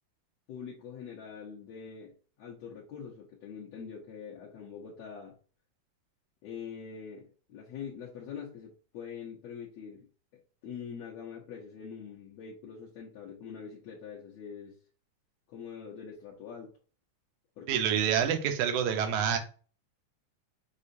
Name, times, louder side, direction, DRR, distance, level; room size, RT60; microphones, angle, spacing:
voice 1, 0.5-5.4 6.4-10.1 10.3-14.8 15.5-16.7 17.6-18.3, left 7 dB, 70° left, -5 dB, 1.9 m, -44 dB
voice 2, 17.7-19.4, right 8 dB, 85° right, 6 dB, 2.1 m, -27 dB
6.5 x 2.4 x 2.7 m, 0.38 s
omnidirectional pair, 3.4 m